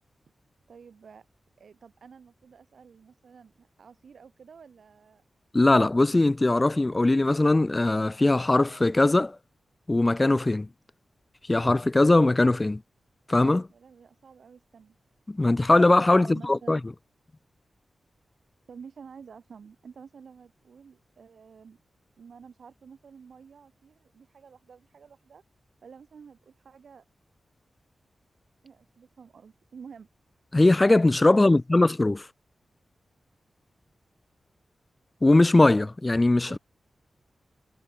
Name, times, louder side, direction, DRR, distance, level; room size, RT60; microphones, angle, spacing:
voice 1, 0.7-1.3 1.6-5.2 13.7-15.0 16.2-16.8 18.7-21.8 22.2-25.4 25.8-27.0 28.6-30.1 31.3-31.9 36.4-36.6, right 6 dB, 70° right, 4.0 m, -50 dB
voice 2, 5.5-9.4 9.9-10.7 11.5-12.8 13.3-13.7 15.3-16.8 30.5-32.2 35.2-36.6, left 2 dB, 20° left, 0.6 m, -20 dB
wide cardioid pair, 165°, 0 cm